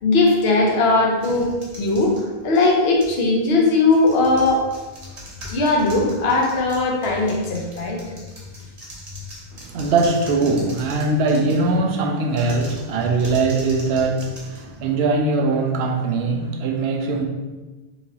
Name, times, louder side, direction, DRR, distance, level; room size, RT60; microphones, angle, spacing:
voice 1, 0.0-1.5 1.8-4.6 5.5-8.0, left 2 dB, 75° left, 0 dB, 1.0 m, -19 dB
sound 1, 1.2-3.3 3.8-11.8 12.3-15.2, left 2 dB, 40° right, 1.0 m, -39 dB
voice 2, 9.5-17.2, right 3 dB, 80° right, 3 dB, 0.8 m, -21 dB
4.5 x 2.9 x 2.8 m, 1.2 s
omnidirectional pair, 1.0 m